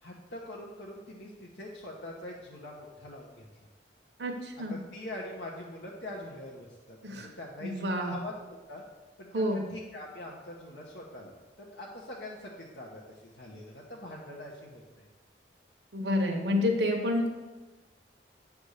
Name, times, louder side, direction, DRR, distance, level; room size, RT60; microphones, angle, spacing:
voice 1, 0.0-3.5 4.7-8.3 8.7-8.8 9.2-15.1, left 1 dB, 85° left, -3 dB, 1.0 m, -43 dB
voice 2, 4.2-4.7 7.0-7.3 7.6-8.1 9.3-9.6 15.9-17.3, left 1 dB, 70° right, 1 dB, 1.0 m, -29 dB
8.2 x 3.5 x 6.5 m, 1.2 s
head